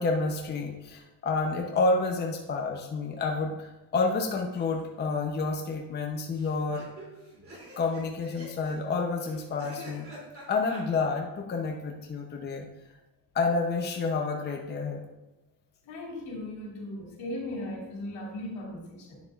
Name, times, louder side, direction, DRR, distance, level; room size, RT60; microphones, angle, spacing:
voice 1, 0.0-6.9 7.8-10.1 10.5-12.7 13.3-15.0, left 3 dB, 25° left, 1 dB, 0.7 m, -29 dB
sound 1, 4.5-5.0 5.3-5.4 5.6-5.7 6.4-10.8, right 1 dB, 35° right, 2.8 m, -47 dB
voice 2, 15.8-19.2, left 1 dB, 75° left, -2 dB, 2.6 m, -37 dB
9.2 x 6.9 x 2.4 m, 1.0 s
cardioid pair, 150°, 39 cm